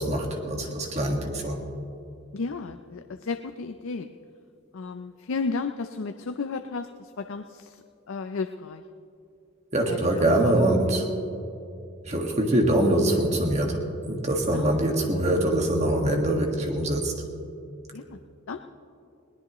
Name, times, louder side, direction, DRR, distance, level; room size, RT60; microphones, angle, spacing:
voice 1, 0.0-1.6 9.7-11.1 12.0-13.8 14.1-17.1, right 1 dB, 30° right, 1 dB, 1.7 m, -24 dB
voice 2, 2.3-4.1 4.7-8.8 9.9-10.5 14.5-14.7 17.9-18.2 18.5-18.7, left 4 dB, 70° left, 8 dB, 0.5 m, -33 dB
21.0 x 18.0 x 3.1 m, 2.6 s
head